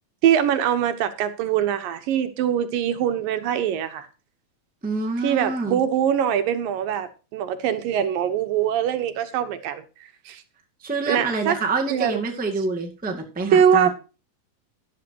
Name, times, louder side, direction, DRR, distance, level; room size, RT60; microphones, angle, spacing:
voice 1, 0.2-4.1 5.2-9.8 10.3-10.4 11.1-11.6 11.9-12.2 13.5-13.9, right 9 dB, 75° right, 2.8 m, -22 dB
voice 2, 4.8-5.8 10.8-13.9, right 3 dB, 5° right, 1.1 m, -26 dB
13.5 x 11.5 x 2.9 m
omnidirectional pair, 4.1 m